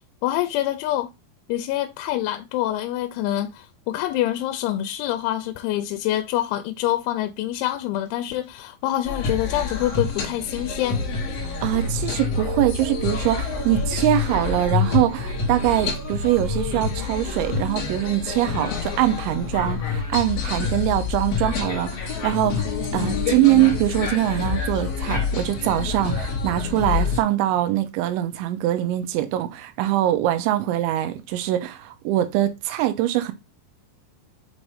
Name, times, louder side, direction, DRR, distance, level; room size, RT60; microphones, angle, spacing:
voice 1, 0.2-1.1 1.5-11.0, left 13 dB, 85° left, 3.0 m, -26 dB
sound 1, 9.0-27.2, left 5 dB, 65° left, 1.6 m, -27 dB
voice 2, 11.6-22.7 22.9-33.3, right 14 dB, 85° right, 3.1 m, -23 dB
7.5 x 2.6 x 4.9 m
omnidirectional pair, 5.3 m